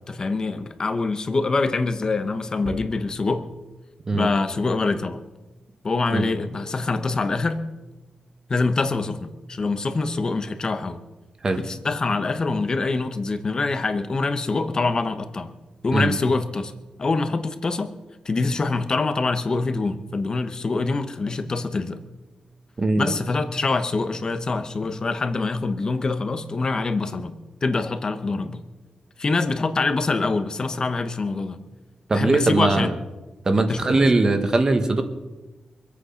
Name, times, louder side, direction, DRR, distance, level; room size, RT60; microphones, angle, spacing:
voice 1, 0.1-3.5 4.1-5.2 5.8-7.7 8.5-11.0 11.6-15.5 15.8-16.7 17.0-17.9 18.2-22.0 23.0-28.6 29.2-31.6 32.1-32.9 33.7-34.0, left 3 dB, 35° left, 10 dB, 1.0 m, -25 dB
voice 2, 22.8-23.1 32.1-32.9 33.4-35.0, right 3 dB, 30° right, 7 dB, 1.4 m, -20 dB
24.5 x 8.6 x 5.8 m, 1.1 s
wide cardioid pair, 175°, 2 cm